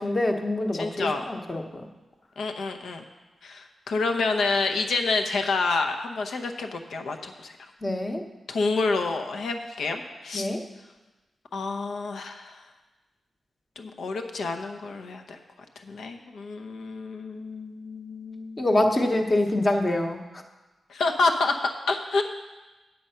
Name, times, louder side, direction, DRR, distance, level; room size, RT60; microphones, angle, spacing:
voice 1, 0.0-1.8 7.8-8.2 10.3-10.6 18.6-20.2, left 1 dB, 25° left, 4 dB, 0.9 m, -25 dB
voice 2, 0.7-1.3 2.4-3.0 3.4-7.6 8.5-10.5 11.5-12.6 13.8-15.4 15.8-18.7 20.9-21.6 21.9-22.2, left 3 dB, 85° left, 5 dB, 0.8 m, -28 dB
8.6 x 7.7 x 5.6 m, 1.2 s
wide cardioid pair, 125°, 0 cm